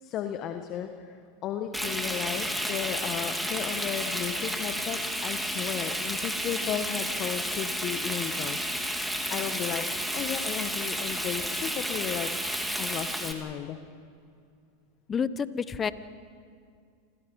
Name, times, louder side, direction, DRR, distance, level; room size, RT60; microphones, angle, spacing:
voice 1, 0.0-8.6 9.0-9.8 10.1-12.3 12.8-13.8, left 10 dB, 45° left, 6 dB, 1.6 m, -34 dB
Frying (food), 1.7-13.3, equal, ahead, 2.8 m, -31 dB
voice 2, 15.1-15.9, left 6 dB, 25° left, 15 dB, 1.1 m, -29 dB
28.5 x 25.5 x 5.6 m, 2.3 s
hypercardioid pair, 100°, 0 cm